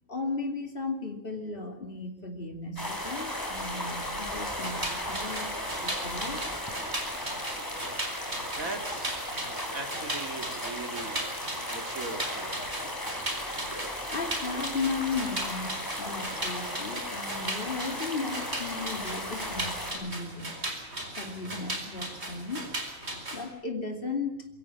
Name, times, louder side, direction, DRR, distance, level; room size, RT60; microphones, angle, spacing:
voice 1, 0.1-5.5 5.8-6.4 14.1-20.6 21.2-22.7 23.3-24.5, left 4 dB, 40° left, 4 dB, 2.9 m, -35 dB
sound 1, 2.8-19.9, left 1 dB, 15° left, 3.8 m, -36 dB
Fabric machine, 4.5-23.4, right 1 dB, 50° right, 4.5 m, -37 dB
voice 2, 8.5-11.3 11.7-12.5, right 3 dB, 85° right, 6 dB, 2.8 m, -40 dB
23.0 x 16.5 x 8.8 m, 0.92 s
omnidirectional pair, 1.4 m